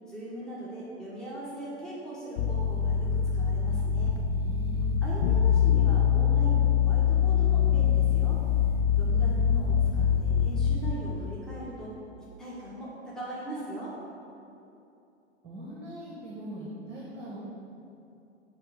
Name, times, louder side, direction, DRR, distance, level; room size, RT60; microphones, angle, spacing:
voice 1, 0.0-4.1 5.0-8.4 8.9-11.9 12.4-13.9, right 1 dB, ahead, -8 dB, 1.6 m, -40 dB
sound 1, 2.4-10.9, left 8 dB, 35° left, 0.4 m, -24 dB
voice 2, 4.3-4.9 9.0-9.4 15.4-17.4, right 1 dB, 15° right, -5 dB, 1.6 m, -42 dB
10.0 x 3.5 x 6.6 m, 2.7 s
figure-of-eight pair, 95°, 35 cm